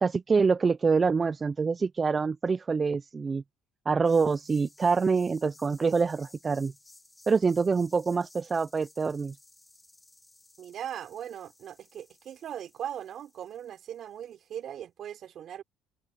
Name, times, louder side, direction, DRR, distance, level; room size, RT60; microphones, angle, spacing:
voice 1, 0.0-3.4 3.9-6.7 7.3-9.4, right 5 dB, 30° right, 0.5 m, -25 dB
sound 1, 4.0-14.5, left 2 dB, 15° left, 4.7 m, -58 dB
voice 2, 10.6-15.6, right 10 dB, 55° right, 3.6 m, -39 dB
open air
supercardioid pair, 70°, 0 cm